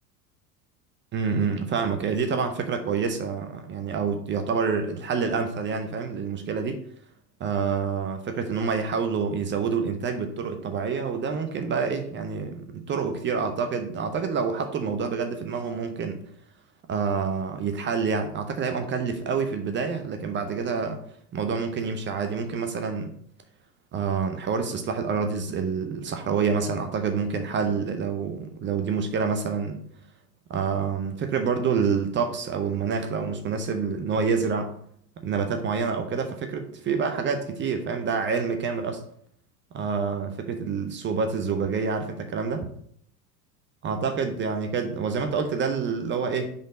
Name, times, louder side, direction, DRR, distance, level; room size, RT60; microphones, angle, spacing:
voice 1, 1.1-6.8 7.4-16.2 16.9-21.0 21.3-23.1 23.9-29.8 30.5-34.7 35.2-39.0 39.7-42.7 43.8-46.5, right 5 dB, 25° right, 7 dB, 0.6 m, -27 dB
5.1 x 4.0 x 5.1 m, 0.66 s
hypercardioid pair, 85°, 50 cm